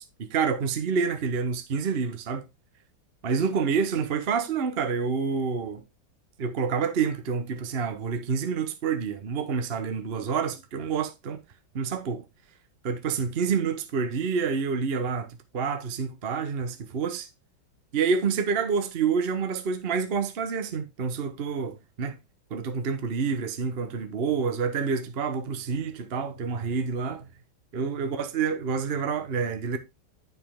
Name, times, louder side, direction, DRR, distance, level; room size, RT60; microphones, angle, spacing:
voice 1, 0.0-2.4 3.2-5.8 6.4-11.4 11.7-12.2 12.8-15.3 15.5-17.3 17.9-22.2 22.5-27.3 27.7-29.8, right 5 dB, 40° right, 0.9 m, -28 dB
9.2 x 5.6 x 3.6 m
omnidirectional pair, 2.1 m